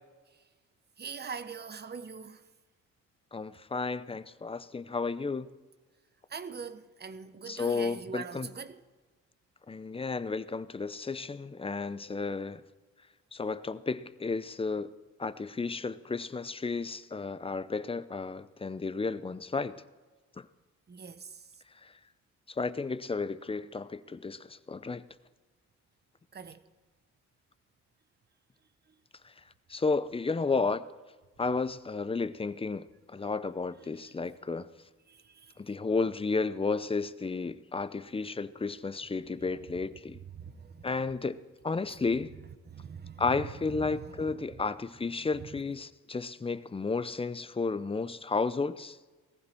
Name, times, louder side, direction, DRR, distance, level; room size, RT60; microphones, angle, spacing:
voice 1, 1.0-2.4 6.3-8.8 20.9-21.2 26.3-26.6 35.1-35.2 40.3-40.9 42.7-43.2 43.9-44.4, right 5 dB, 35° right, 1.0 m, -42 dB
voice 2, 3.3-5.5 7.5-8.5 9.7-12.6 13.3-14.9 15.2-19.8 20.4-20.5 21.8-21.9 22.6-25.0 29.7-30.8 31.4-34.7 35.6-40.2 40.8-42.3 43.2-49.0, left 4 dB, 20° left, 0.6 m, -32 dB
18.0 x 15.0 x 4.5 m
cardioid pair, 90°, 30 cm